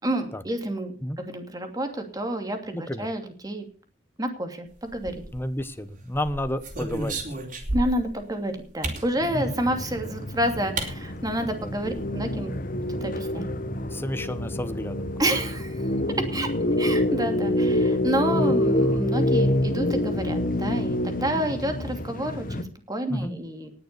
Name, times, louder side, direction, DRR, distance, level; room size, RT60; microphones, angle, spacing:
voice 1, 0.0-0.9 1.2-3.7 4.2-5.2 7.7-12.5 13.0-13.5 15.2-15.8 16.2-16.5 16.8-23.7, right 1 dB, 20° right, 5 dB, 2.7 m, -29 dB
voice 2, 2.7-3.1 5.3-7.2 9.3-9.5 11.5-11.7 12.5-12.7 13.9-15.1 18.3-18.6 23.1-23.4, left 1 dB, 15° left, 10 dB, 1.1 m, -31 dB
sound 1, 4.9-5.6 6.1-8.1 8.8-9.1 10.2-10.3 10.8-10.9 11.3-11.4 11.6-12.0, right 2 dB, 50° right, 4.0 m, -32 dB
sound 2, 9.2-22.6, left 1 dB, 50° left, 1.2 m, -27 dB
19.5 x 6.8 x 6.8 m, 0.41 s
head